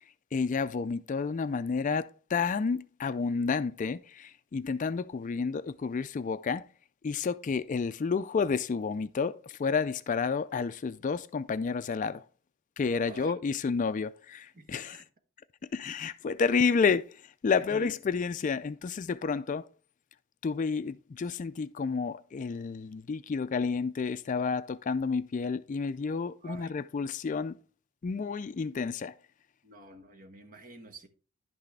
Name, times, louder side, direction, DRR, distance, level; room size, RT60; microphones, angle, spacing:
voice 1, 0.3-6.6 7.0-12.2 12.8-15.0 15.7-17.0 17.4-19.6 20.4-27.6 28.0-29.1, left 5 dB, 35° left, 0.3 m, -30 dB
voice 2, 13.0-13.4 14.5-15.1 16.7-16.9 17.6-17.9 26.4-26.7 29.6-31.1, right 2 dB, 40° right, 1.2 m, -48 dB
11.0 x 6.0 x 3.3 m
head